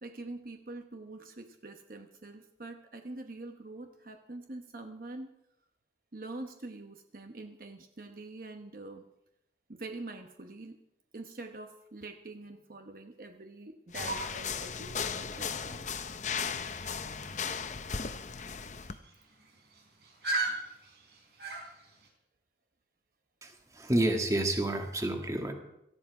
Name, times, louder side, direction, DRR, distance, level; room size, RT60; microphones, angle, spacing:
voice 1, 0.0-5.3 6.1-9.1 9.7-10.8 11.1-15.9, right 2 dB, 50° right, 5 dB, 1.0 m, -45 dB
sound 1, 13.9-19.0, left 6 dB, 40° left, 0.7 m, -36 dB
sound 2, 14.0-22.1, right 2 dB, 65° right, 3.9 m, -40 dB
voice 2, 23.4-25.5, right 1 dB, 20° right, 4 dB, 1.7 m, -29 dB
17.5 x 13.5 x 4.8 m, 0.84 s
head